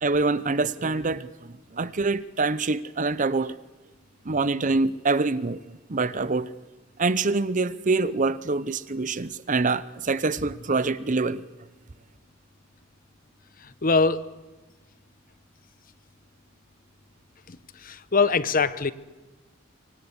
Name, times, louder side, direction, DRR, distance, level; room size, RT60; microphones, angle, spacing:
voice 1, 0.0-3.6 4.2-5.6 5.9-6.5 7.0-11.4, right 3 dB, 40° right, 0.8 m, -25 dB
voice 2, 13.8-14.2 17.5-17.6 17.8-18.9, left 4 dB, 45° left, 0.9 m, -22 dB
24.5 x 24.5 x 8.1 m
head